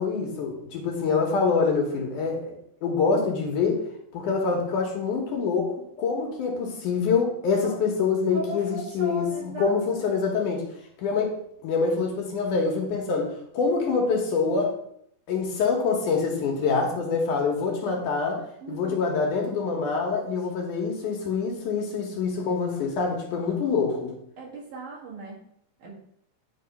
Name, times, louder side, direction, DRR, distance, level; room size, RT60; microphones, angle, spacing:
voice 1, 0.0-2.6 2.8-3.8 4.1-10.7 11.0-11.4 11.6-14.7 15.3-24.2, left 5 dB, 65° left, 1 dB, 2.5 m, -25 dB
voice 2, 8.3-9.8 10.1-10.2 18.6-19.1 24.4-25.4 25.8-25.9, right 1 dB, 65° right, -5 dB, 3.6 m, -37 dB
9.5 x 3.5 x 5.4 m, 0.70 s
omnidirectional pair, 4.1 m